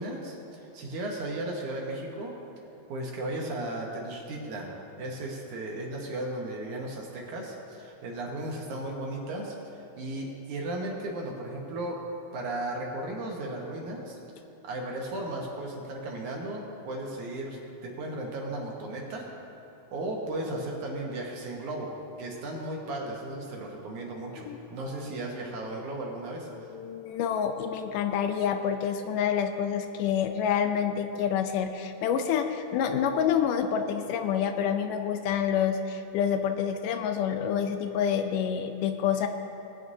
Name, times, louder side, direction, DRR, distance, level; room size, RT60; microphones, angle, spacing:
voice 1, 0.0-2.3 2.9-4.7 5.0-12.0 12.3-14.2 14.6-19.3 19.9-26.7, right 1 dB, 65° right, -1 dB, 2.3 m, -35 dB
voice 2, 26.5-39.3, left 8 dB, 80° left, 7 dB, 2.0 m, -28 dB
20.0 x 9.3 x 2.7 m, 2.9 s
omnidirectional pair, 4.1 m